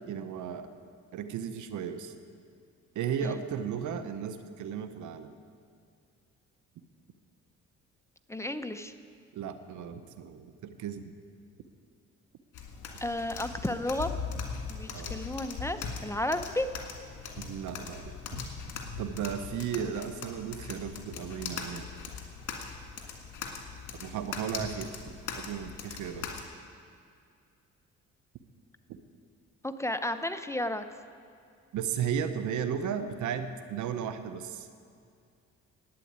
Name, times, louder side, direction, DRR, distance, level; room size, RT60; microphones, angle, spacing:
voice 1, 0.1-0.7 1.1-2.1 2.9-5.3 9.3-11.1 14.9-15.2 17.4-18.5 19.0-21.9 24.0-24.9 25.3-26.3 31.7-34.7, right 8 dB, 75° right, 10 dB, 1.0 m, -35 dB
voice 2, 8.3-8.9 13.0-14.1 14.7-16.7 29.6-30.8, left 1 dB, 10° left, 9 dB, 0.7 m, -32 dB
sound 1, 12.5-26.4, left 5 dB, 80° left, 2.0 m, -40 dB
11.5 x 9.1 x 8.8 m, 2.4 s
cardioid pair, 90°, 30 cm